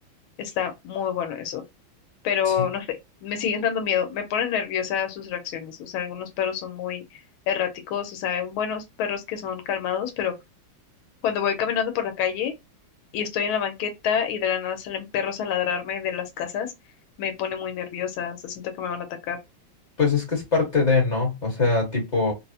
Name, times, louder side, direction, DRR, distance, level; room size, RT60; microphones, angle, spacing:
voice 1, 0.4-1.6 2.2-2.9 3.2-7.2 7.5-10.3 11.2-12.5 13.1-16.7 17.2-19.4, left 8 dB, 90° left, 1.5 m, -27 dB
voice 2, 20.0-22.3, left 4 dB, 25° left, 1.0 m, -22 dB
3.9 x 2.0 x 2.6 m
omnidirectional pair, 2.2 m